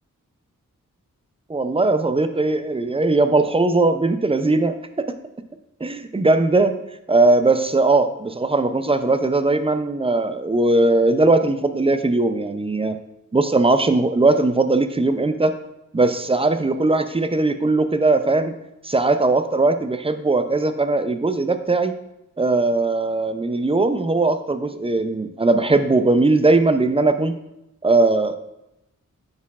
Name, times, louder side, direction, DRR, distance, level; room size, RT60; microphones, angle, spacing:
voice 1, 1.5-5.1 5.8-6.7 7.1-13.0 13.3-15.5 15.9-18.5 18.8-21.9 22.4-27.3 27.8-28.3, right 2 dB, 20° right, 9 dB, 0.4 m, -19 dB
9.4 x 4.3 x 2.4 m, 0.87 s
wide cardioid pair, 80°, 32 cm